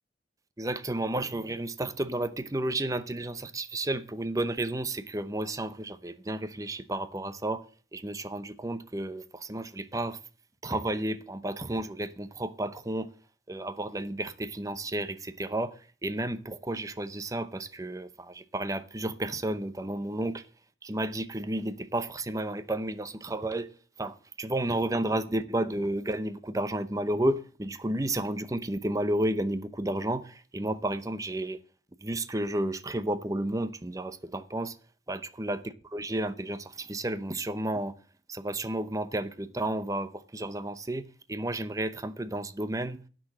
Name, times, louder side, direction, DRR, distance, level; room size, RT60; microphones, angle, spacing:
voice 1, 0.6-7.6 7.9-10.2 10.6-13.1 13.5-15.7 16.0-20.4 20.8-23.7 24.0-31.6 32.0-34.8 35.1-38.0 38.3-43.0, right 1 dB, 20° right, 0.7 m, -32 dB
10.5 x 6.3 x 7.5 m
head